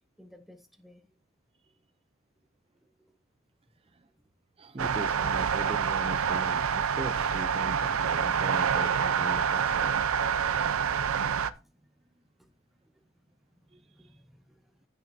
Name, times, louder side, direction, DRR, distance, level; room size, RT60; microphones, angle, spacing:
voice 1, 0.2-1.0 10.8-11.0 12.4-12.5 13.8-14.6, left 1 dB, ahead, 1.0 m, -56 dB
voice 2, 4.6-10.0 13.7-14.2, right 1 dB, 25° right, 0.5 m, -40 dB
sound 1, 4.8-11.5, right 7 dB, 80° right, 0.6 m, -27 dB
14.5 x 6.0 x 2.7 m
head